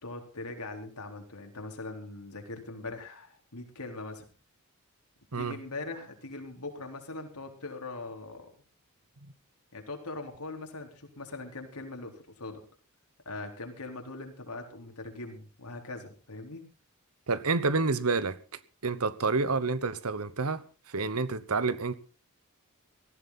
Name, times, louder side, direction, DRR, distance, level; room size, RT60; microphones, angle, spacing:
voice 1, 0.0-4.3 5.3-8.5 9.7-12.6 13.3-16.6, left 2 dB, 90° left, 4.1 m, -41 dB
voice 2, 17.3-18.4 18.8-21.9, right 4 dB, 75° right, 1.1 m, -29 dB
18.0 x 14.5 x 4.1 m
head